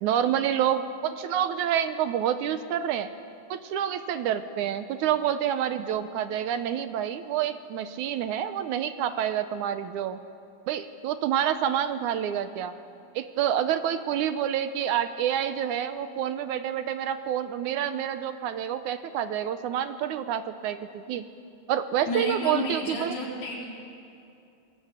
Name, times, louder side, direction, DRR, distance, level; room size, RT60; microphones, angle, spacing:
voice 1, 0.0-3.1 3.5-10.2 10.7-12.7 13.2-21.3 21.7-23.2, right 10 dB, 75° right, 10 dB, 2.0 m, -28 dB
voice 2, 22.0-23.7, left 2 dB, 85° left, -3 dB, 5.7 m, -32 dB
26.5 x 20.0 x 8.2 m, 2.6 s
omnidirectional pair, 4.1 m